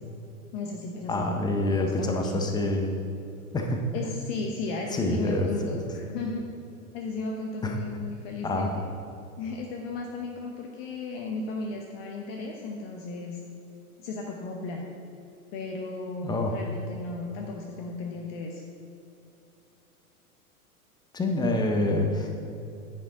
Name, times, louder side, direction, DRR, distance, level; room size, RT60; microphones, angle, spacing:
voice 1, 0.5-1.3 1.6-2.4 3.9-6.4 6.9-8.7 9.4-13.4 14.0-14.9 15.5-18.6, left 3 dB, 40° left, 1 dB, 0.9 m, -35 dB
voice 2, 1.1-3.0 3.5-3.9 4.9-5.8 7.6-7.8 8.4-8.8 16.2-16.5 21.1-22.3, left 2 dB, 10° left, 3 dB, 0.6 m, -27 dB
9.8 x 5.2 x 3.7 m, 2.8 s
hypercardioid pair, 105°, 45 cm